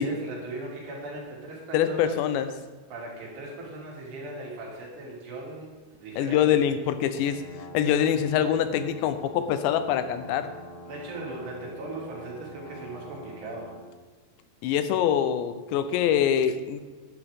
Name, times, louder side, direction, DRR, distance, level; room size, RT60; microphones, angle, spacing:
voice 1, 0.0-2.2 2.9-5.7 6.0-6.6 10.9-13.7, right 2 dB, 70° right, -3 dB, 4.7 m, -38 dB
voice 2, 1.7-2.5 6.2-7.4 7.7-10.5 14.6-16.8, left 9 dB, 90° left, 10 dB, 3.0 m, -24 dB
sound 1, 7.1-13.9, equal, 65° left, 2.3 m, -45 dB
12.0 x 10.5 x 3.6 m, 1.4 s
omnidirectional pair, 5.0 m